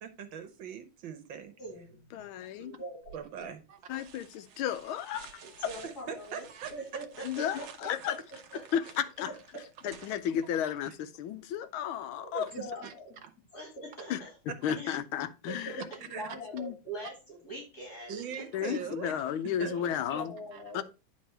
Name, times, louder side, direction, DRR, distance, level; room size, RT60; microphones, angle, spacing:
voice 1, 0.0-1.5 3.1-3.8 5.8-6.7 10.9-11.0 12.3-12.9 13.2-13.3 14.5-14.6 16.1-16.3 18.1-19.9 20.5-20.8, right 7 dB, 70° right, 1.8 m, -41 dB
voice 2, 1.6-2.2 2.6-3.4 5.4-7.2 7.6-8.1 8.5-8.6 9.5-9.9 12.2-13.2 13.5-14.3 14.7-15.0 15.5-18.1 19.6-19.8 20.1-20.8, equal, 50° left, 3.0 m, -43 dB
voice 3, 2.1-2.7 3.9-5.7 7.2-8.2 8.7-9.3 9.8-12.5 14.1-14.2 14.6-15.8 16.5-16.8 18.5-20.3 20.7-20.8, left 9 dB, 90° left, 1.5 m, -33 dB
sound 1, 3.0-3.4 3.9-10.9 12.6-12.7, right 7 dB, 90° right, 1.7 m, -52 dB
9.5 x 4.2 x 4.4 m
omnidirectional pair, 2.2 m